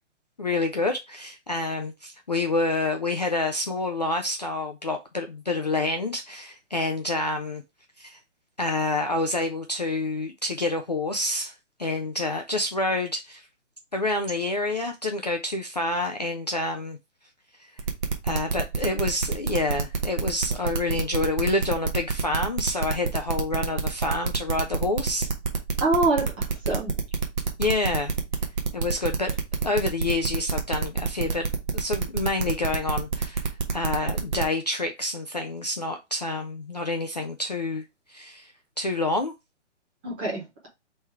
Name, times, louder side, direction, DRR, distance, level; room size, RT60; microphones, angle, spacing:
voice 1, 0.4-7.6 8.0-8.2 8.6-13.5 13.9-17.0 17.6-17.7 18.2-25.3 27.6-28.1 28.7-29.4 29.6-31.4 31.7-37.8 38.1-38.5 38.8-39.3, left 2 dB, 35° left, 0.4 m, -28 dB
sound 1, 17.8-34.4, right 5 dB, 40° right, 0.9 m, -27 dB
voice 2, 25.8-26.9 40.0-40.7, right 2 dB, 10° right, 0.7 m, -25 dB
3.5 x 3.2 x 4.4 m
hypercardioid pair, 165°, 36 cm